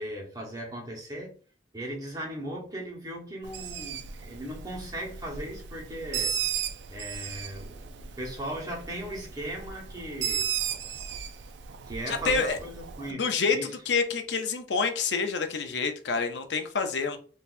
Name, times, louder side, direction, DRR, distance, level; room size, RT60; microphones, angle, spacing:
voice 1, 0.0-1.3 1.7-6.3 6.9-10.5 11.9-13.2 13.5-13.7, right 1 dB, 20° right, 1.1 m, -37 dB
Bird, 3.4-13.1, right 8 dB, 85° right, 0.4 m, -35 dB
voice 2, 12.1-12.6 13.1-13.6 13.9-17.2, left 5 dB, 80° left, 0.6 m, -27 dB
3.9 x 2.7 x 2.5 m
head